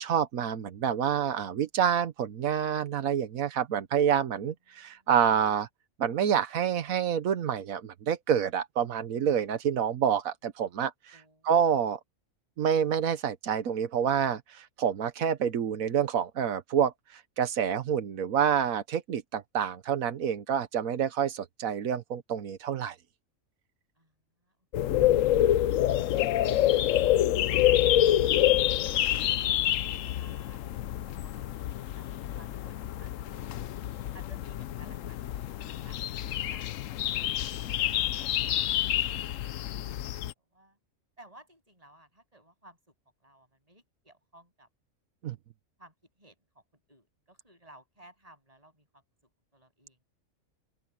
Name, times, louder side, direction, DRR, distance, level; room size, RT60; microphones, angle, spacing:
voice 1, 0.0-5.7 6.0-10.9 11.4-12.0 12.6-22.9 25.0-25.2 45.2-45.3, right 8 dB, 90° right, 1.4 m, -28 dB
voice 2, 4.7-5.1 11.1-11.6 24.0-24.1 24.4-24.6 27.2-31.4 32.0-33.4 34.1-38.9 40.4-40.8 41.2-42.9 43.2-44.7 45.8-46.6 46.9-49.0 49.5-50.0, right 1 dB, 25° right, 8.2 m, -58 dB
sound 1, 24.7-40.3, left 12 dB, 75° left, 1.0 m, -27 dB
open air
omnidirectional pair, 1.4 m